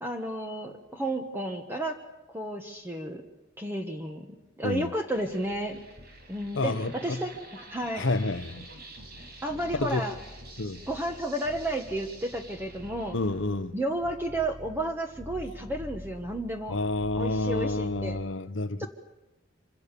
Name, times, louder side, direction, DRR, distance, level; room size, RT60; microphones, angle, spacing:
voice 1, 0.0-2.0 2.3-3.2 3.6-5.8 6.3-8.1 9.4-10.2 10.9-13.2 13.7-16.8 17.2-18.2 18.8-18.9, right 1 dB, 10° right, 1.5 m, -32 dB
sound 1, 5.1-18.2, equal, 50° right, 5.4 m, -46 dB
voice 2, 6.5-7.2 8.0-8.7 9.7-10.0 10.6-10.8 13.1-13.7 16.7-18.9, left 2 dB, 65° left, 1.0 m, -29 dB
26.0 x 26.0 x 7.0 m
head